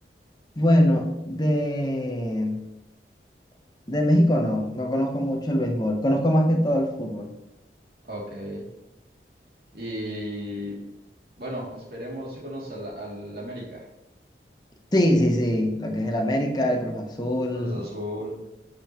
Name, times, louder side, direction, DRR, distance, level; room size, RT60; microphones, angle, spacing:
voice 1, 0.6-2.6 3.9-7.3 14.9-17.8, equal, 25° left, 2 dB, 1.1 m, -23 dB
voice 2, 8.0-8.7 9.7-10.8 11.4-13.8 17.5-18.4, equal, 60° right, -3 dB, 2.8 m, -35 dB
11.0 x 6.8 x 3.1 m, 0.90 s
head